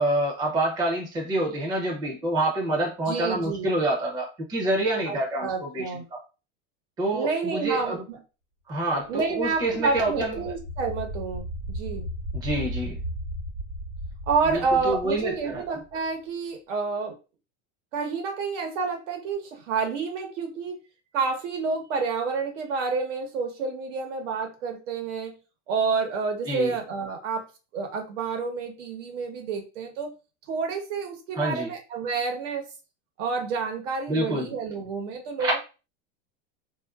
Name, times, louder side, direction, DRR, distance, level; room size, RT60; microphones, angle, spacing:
voice 1, 0.0-5.8 6.1-6.2 7.0-8.0 8.7-10.5 12.3-13.0 14.5-15.8 26.4-26.7 31.4-31.7 34.1-34.5 35.4-35.6, right 1 dB, 10° right, 0 dB, 0.5 m, -27 dB
voice 2, 3.1-3.7 5.1-6.0 7.1-8.2 9.1-12.1 14.3-17.1 17.9-20.8 21.1-25.4 25.7-27.5 27.7-30.1 30.5-32.6 33.2-35.6, right 4 dB, 90° right, 4 dB, 1.1 m, -29 dB
sound 1, 9.2-16.0, equal, 50° right, 0.8 m, -36 dB
3.5 x 2.5 x 2.3 m, 0.31 s
supercardioid pair, 170°, 36 cm